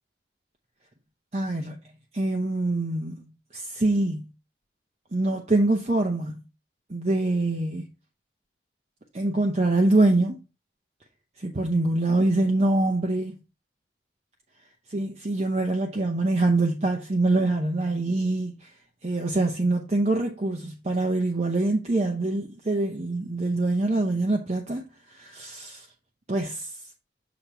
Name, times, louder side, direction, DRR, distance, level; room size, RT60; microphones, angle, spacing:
voice 1, 1.3-1.8 2.1-4.3 5.1-6.4 6.9-7.9 9.1-10.4 11.4-13.4 14.9-18.7 19.0-25.9 26.3-26.8, right 2 dB, 35° right, 0.7 m, -25 dB
6.8 x 3.0 x 5.8 m
head